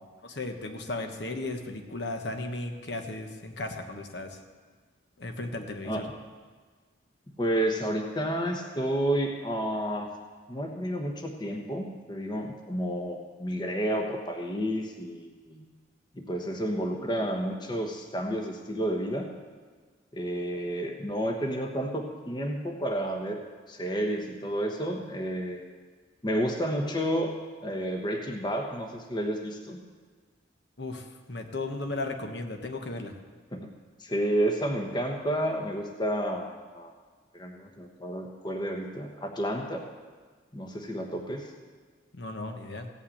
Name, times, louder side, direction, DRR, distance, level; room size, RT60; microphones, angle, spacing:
voice 1, 0.2-4.4 5.2-6.0 30.8-33.1 42.1-42.9, left 2 dB, 60° left, 4 dB, 1.2 m, -35 dB
voice 2, 7.4-10.1 10.5-15.6 16.1-19.3 20.1-23.4 23.7-25.6 26.2-27.3 27.6-29.8 33.5-33.7 34.0-36.5 36.7-36.9 37.3-39.8 40.5-41.5, right 1 dB, 25° left, 3 dB, 1.0 m, -30 dB
16.0 x 5.6 x 8.6 m, 1.5 s
head